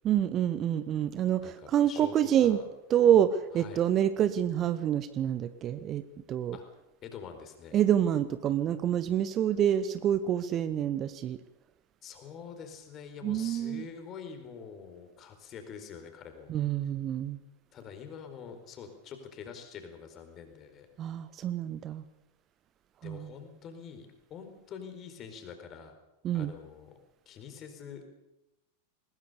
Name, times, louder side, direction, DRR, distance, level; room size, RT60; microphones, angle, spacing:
voice 1, 0.0-2.6 2.9-6.6 7.7-11.4 13.2-13.9 16.5-17.4 21.0-22.0 23.0-23.3 26.2-26.5, right 10 dB, 30° right, 13 dB, 1.0 m, -27 dB
voice 2, 1.4-2.6 3.5-3.8 6.5-6.6 7.0-7.8 12.0-16.5 17.7-20.9 23.0-25.9 26.3-27.0 27.3-28.0, left 7 dB, 30° left, 7 dB, 4.4 m, -45 dB
20.5 x 20.5 x 7.0 m, 0.93 s
figure-of-eight pair, 90°, 0 cm